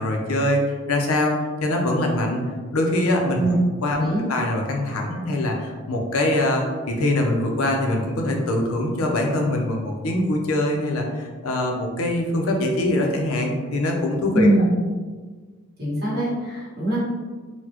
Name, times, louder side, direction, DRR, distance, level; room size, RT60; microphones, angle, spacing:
voice 1, 0.0-1.3 1.6-2.4 2.7-3.5 3.8-14.5, left 1 dB, 85° left, 1 dB, 0.6 m, -23 dB
voice 2, 3.9-4.2 14.3-14.8 15.8-17.0, right 1 dB, 45° right, -8 dB, 1.4 m, -22 dB
4.0 x 2.2 x 2.9 m, 1.4 s
head